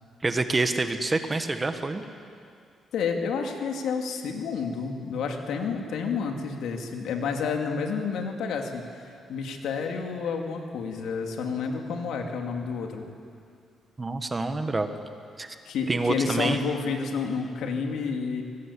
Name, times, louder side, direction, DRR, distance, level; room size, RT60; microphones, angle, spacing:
voice 1, 0.2-2.0 14.0-14.9 15.4-15.5 15.9-16.6, right 3 dB, 20° right, 8 dB, 1.5 m, -27 dB
voice 2, 2.9-13.1 15.6-18.4, left 5 dB, 85° left, 3 dB, 2.9 m, -30 dB
24.5 x 20.0 x 8.5 m, 2.3 s
cardioid pair, 125°, 0 cm